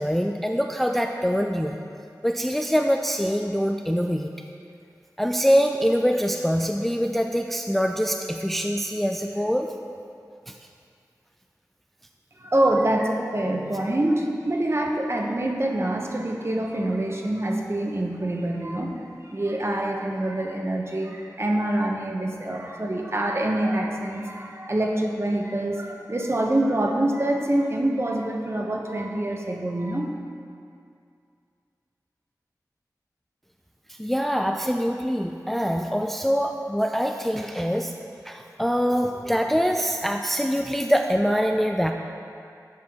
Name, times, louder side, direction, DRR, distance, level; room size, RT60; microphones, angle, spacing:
voice 1, 0.0-1.8 2.2-4.3 5.2-9.7 10.5-10.6 33.9-37.9 38.3-41.9, equal, 5° left, 3 dB, 0.3 m, -24 dB
voice 2, 12.4-30.2, right 1 dB, 40° right, 1 dB, 0.8 m, -25 dB
7.7 x 5.7 x 3.6 m, 2.4 s
wide cardioid pair, 40°, 7 cm